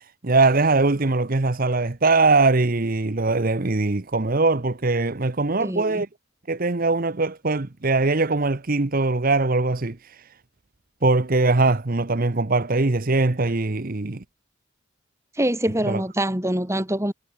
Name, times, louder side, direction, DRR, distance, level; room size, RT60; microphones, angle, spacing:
voice 1, 0.0-6.1 6.5-10.3 11.0-14.2 15.8-16.0, right 3 dB, 40° right, 0.9 m, -21 dB
voice 2, 5.6-6.0 15.4-17.1, right 1 dB, 15° right, 2.7 m, -24 dB
head